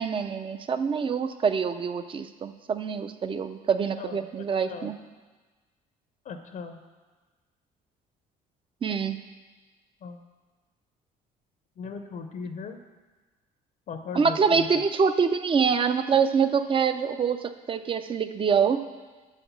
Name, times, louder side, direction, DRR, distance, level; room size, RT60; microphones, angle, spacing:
voice 1, 0.0-5.0 8.8-9.2 14.1-18.8, right 6 dB, 30° right, 10 dB, 0.5 m, -25 dB
voice 2, 6.3-6.8 10.0-10.2 11.8-12.8 13.9-14.7, left 5 dB, 50° left, 7 dB, 0.6 m, -38 dB
6.3 x 5.7 x 7.1 m, 1.3 s
cardioid pair, 110°, 17 cm